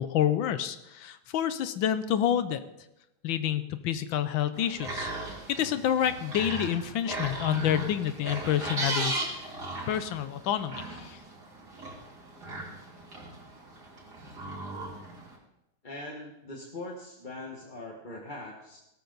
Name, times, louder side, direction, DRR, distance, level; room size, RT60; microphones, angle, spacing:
voice 1, 0.0-2.6 3.2-5.1 5.5-9.5 9.9-11.2, left 10 dB, 80° left, 12 dB, 1.5 m, -28 dB
sound 1, 4.5-15.3, right 2 dB, 55° right, 3.6 m, -37 dB
voice 2, 15.8-18.8, left 2 dB, 25° left, -1 dB, 1.4 m, -41 dB
17.5 x 13.5 x 4.0 m, 0.88 s
omnidirectional pair, 2.2 m